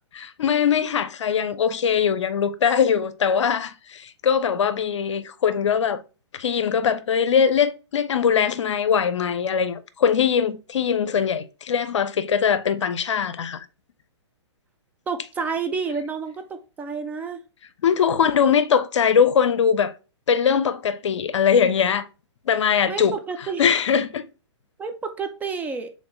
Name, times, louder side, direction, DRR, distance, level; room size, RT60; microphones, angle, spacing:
voice 1, 0.1-6.0 6.3-13.7 17.8-19.9 20.3-22.1 22.5-23.1 23.6-24.3, left 7 dB, 75° left, 0.6 m, -21 dB
voice 2, 15.1-17.4 22.9-23.6 24.8-25.9, right 5 dB, 10° right, 0.4 m, -30 dB
4.2 x 3.6 x 3.1 m
hypercardioid pair, 135°, 15 cm